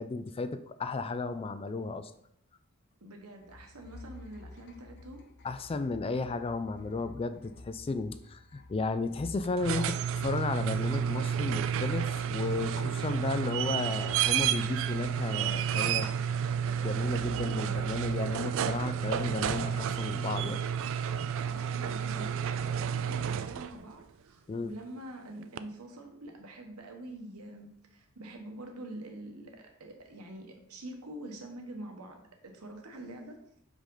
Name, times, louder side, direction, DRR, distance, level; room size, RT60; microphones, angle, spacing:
voice 1, 0.0-2.1 5.4-16.1 16.6-20.6 24.5-24.7, left 3 dB, 25° left, 11 dB, 0.3 m, -34 dB
voice 2, 3.0-5.2 21.4-33.4, right 1 dB, 90° right, 3 dB, 1.1 m, -45 dB
sound 1, 3.4-13.7 14.0-15.9 17.1-18.1, left 2 dB, 50° left, 0.7 m, -52 dB
sound 2, 9.4-23.8 25.6-25.7, right 8 dB, 60° right, 0.3 m, -31 dB
5.2 x 4.9 x 3.8 m, 0.73 s
head